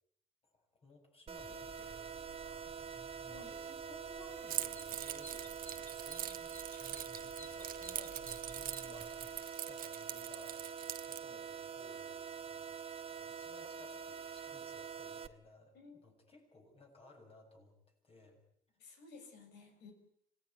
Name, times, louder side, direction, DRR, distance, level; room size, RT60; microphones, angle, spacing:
voice 1, 0.4-9.4 9.7-10.6 11.1-12.8 13.1-17.8 18.0-18.4 18.9-19.0, left 2 dB, 35° left, 2 dB, 7.7 m, -60 dB
sound 1, 1.3-15.3, right 7 dB, 35° right, 1.4 m, -46 dB
sound 2, 1.4-9.5, left 1 dB, 10° left, 1.8 m, -56 dB
Keys jangling, 4.5-11.2, right 11 dB, 55° right, 1.2 m, -43 dB
voice 2, 15.7-16.1 18.8-19.9, left 4 dB, 80° left, 6 dB, 6.6 m, -55 dB
26.5 x 17.0 x 9.6 m, 0.72 s
cardioid pair, 110°, 17 cm